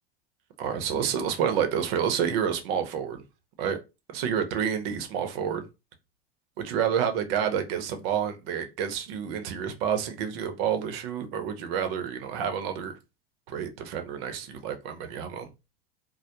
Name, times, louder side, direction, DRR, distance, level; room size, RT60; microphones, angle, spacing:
voice 1, 0.6-3.2 3.6-3.8 4.1-5.6 6.6-12.9 13.5-15.5, right 8 dB, 65° right, 0.7 m, -29 dB
2.2 x 2.0 x 2.8 m
hypercardioid pair, 100°, 32 cm